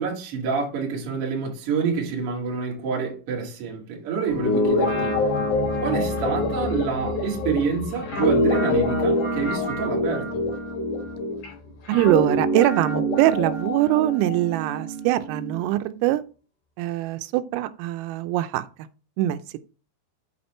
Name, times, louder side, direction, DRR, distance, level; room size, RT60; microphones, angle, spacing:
voice 1, 0.0-5.2 5.8-10.4, right 6 dB, 45° right, 1.9 m, -27 dB
sound 1, 4.3-13.6 14.0-14.1, left 5 dB, 80° left, 2.3 m, -37 dB
Guitar, 4.3-11.5 11.9-15.6, left 1 dB, 50° left, 4.5 m, -25 dB
voice 2, 11.9-16.2 16.8-18.7 19.2-19.4, right 15 dB, 85° right, 3.3 m, -22 dB
8.8 x 4.3 x 4.3 m
omnidirectional pair, 5.9 m